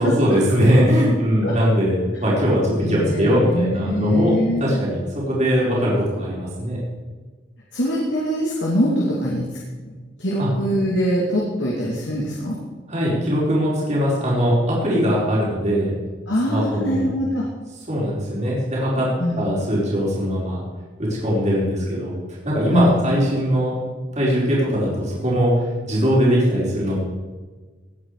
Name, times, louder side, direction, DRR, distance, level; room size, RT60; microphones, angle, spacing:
voice 1, 0.0-4.3 4.6-6.8 10.4-10.5 12.9-15.9 16.5-17.1 17.9-19.1 19.4-20.6 21.0-22.1 22.4-23.7 24.1-25.5 25.9-27.0, equal, 40° right, -6 dB, 4.7 m, -20 dB
voice 2, 2.8-4.6 7.7-9.5 10.2-12.6 16.3-17.4 19.2-19.4 22.7-22.9, equal, 80° left, -4 dB, 2.7 m, -22 dB
19.0 x 8.8 x 4.9 m, 1.4 s
head